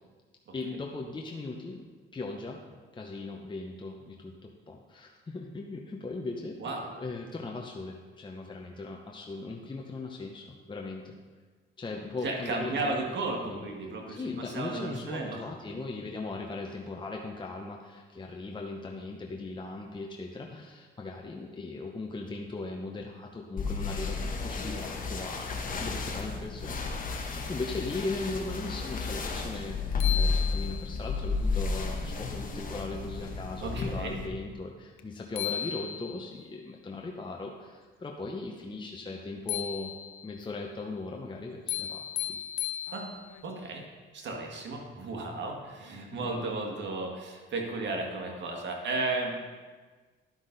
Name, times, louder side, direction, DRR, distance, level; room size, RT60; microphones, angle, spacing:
voice 1, 0.5-1.8 2.1-2.6 2.9-6.6 7.0-11.1 11.8-13.0 13.4-13.7 14.2-26.8 27.1-39.9 40.2-42.4 46.1-46.3, left 3 dB, 25° left, 1 dB, 0.9 m, -38 dB
voice 2, 6.6-6.9 12.2-15.5 33.6-34.2 42.9-43.1 43.4-43.9 44.1-49.4, right 3 dB, 65° right, 1 dB, 1.9 m, -34 dB
sound 1, 23.6-34.3, left 4 dB, 45° left, 1.2 m, -32 dB
sound 2, 29.5-29.6 30.0-31.1 35.0-35.1 35.4-36.4 39.5-40.4 41.7-43.4, left 11 dB, 80° left, 0.6 m, -35 dB
11.5 x 6.0 x 4.0 m, 1.4 s
cardioid pair, 90°, 20 cm